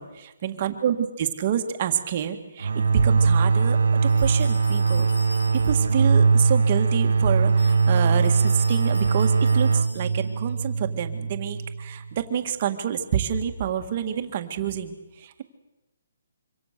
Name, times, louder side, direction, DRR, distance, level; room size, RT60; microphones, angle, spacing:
voice 1, 0.0-15.4, right 9 dB, 35° right, 6 dB, 1.9 m, -28 dB
sound 1, 2.6-12.1, right 4 dB, 80° right, 0.9 m, -21 dB
sound 2, 4.1-6.0 7.5-10.4, left 2 dB, 85° left, 6.4 m, -43 dB
25.5 x 25.0 x 6.8 m, 1.0 s
hypercardioid pair, 170°, 0 cm